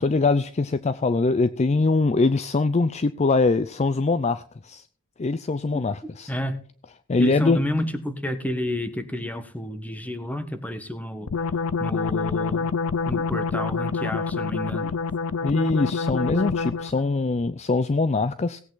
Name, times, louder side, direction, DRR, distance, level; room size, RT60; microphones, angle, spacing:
voice 1, 0.0-4.9 5.2-6.3 7.1-7.6 15.4-18.6, left 3 dB, 30° left, 0.4 m, -23 dB
voice 2, 6.3-6.6 7.2-11.3 11.8-12.7 13.0-14.9, equal, 5° left, 1.3 m, -30 dB
sound 1, 11.3-17.0, left 5 dB, 80° left, 0.5 m, -27 dB
17.5 x 8.3 x 3.9 m
head